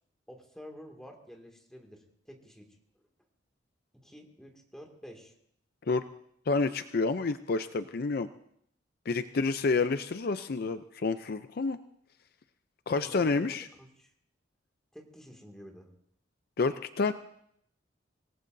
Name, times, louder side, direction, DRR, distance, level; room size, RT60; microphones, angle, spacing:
voice 1, 0.3-2.7 3.9-5.3 12.9-14.1 14.9-15.9, equal, 5° left, 1 dB, 2.2 m, -50 dB
voice 2, 6.5-8.3 9.1-11.8 12.9-13.7 16.6-17.1, left 4 dB, 55° left, 11 dB, 0.5 m, -29 dB
26.0 x 18.5 x 2.7 m, 0.71 s
head